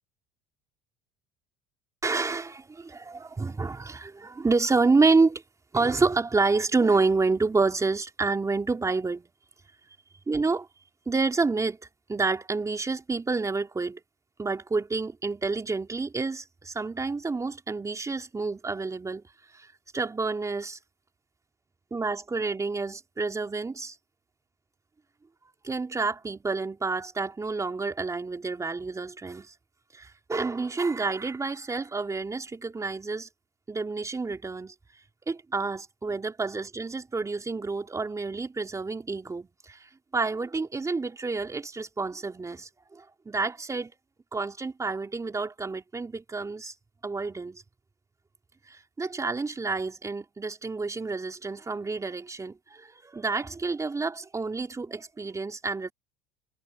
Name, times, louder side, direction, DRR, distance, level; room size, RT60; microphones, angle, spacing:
voice 1, 2.0-5.4 5.7-9.3 10.3-10.7 11.1-11.8 12.1-14.0 14.4-19.2 19.5-20.8 21.9-24.0 25.6-29.5 29.9-33.3 33.7-34.7 35.3-43.9 44.3-46.7 47.0-47.6 48.7-55.9, right 3 dB, 20° right, 3.5 m, -29 dB
supercardioid pair, 100°, 17 cm